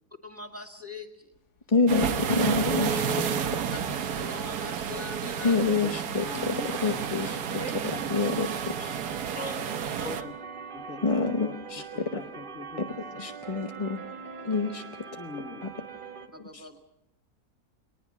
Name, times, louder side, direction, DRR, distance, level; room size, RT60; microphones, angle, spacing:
voice 1, 0.2-1.3 3.7-3.8 4.2-5.7 7.6-7.7 9.3-10.3 16.3-16.8, left 2 dB, 10° right, 4 dB, 1.8 m, -41 dB
voice 2, 1.7-3.0 5.4-9.0 11.0-12.2 12.8-14.0 14.4-15.1 15.6-15.7 16.5-16.7, left 4 dB, 30° left, 6 dB, 0.7 m, -28 dB
Telephone, 1.9-2.0 2.6-7.5 8.0-8.1 8.5-8.7 9.0-9.3 9.7-9.8, equal, 75° left, 2.2 m, -39 dB
sound 1, 1.9-10.2, right 8 dB, 75° right, 1.5 m, -31 dB
voice 3, 5.8-6.7 7.5-8.0 10.0-10.3 10.7-11.5 11.9-13.2 15.2-15.7, left 4 dB, 55° left, 6 dB, 1.9 m, -42 dB
sound 2, 6.5-16.3, right 5 dB, 30° right, 1.5 m, -42 dB
21.5 x 20.0 x 7.2 m, 0.82 s
omnidirectional pair, 1.7 m